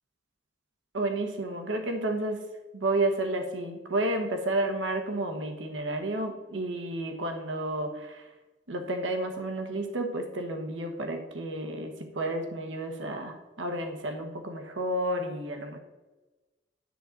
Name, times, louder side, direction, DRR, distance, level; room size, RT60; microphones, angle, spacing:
voice 1, 0.9-2.4 2.7-8.3 8.7-15.8, right 1 dB, 80° right, 5 dB, 1.2 m, -31 dB
10.0 x 3.9 x 7.4 m, 1.1 s
head